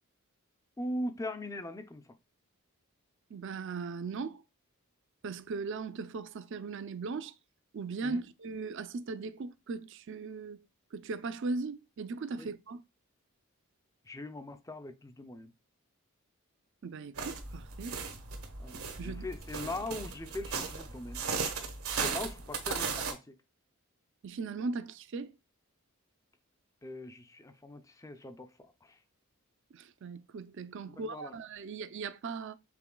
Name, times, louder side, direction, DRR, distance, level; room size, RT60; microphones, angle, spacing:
voice 1, 0.8-2.2 8.0-8.2 12.4-12.5 14.0-15.5 18.6-21.2 21.9-23.4 26.8-29.0 31.0-31.4, left 1 dB, 15° left, 0.4 m, -41 dB
voice 2, 3.3-4.4 5.2-7.3 7.7-10.6 10.9-12.8 16.8-18.0 19.0-19.2 24.2-25.4 29.7-32.6, right 4 dB, 55° right, 0.4 m, -38 dB
sound 1, 17.2-23.1, right 5 dB, 80° right, 1.2 m, -36 dB
5.9 x 3.7 x 2.2 m
head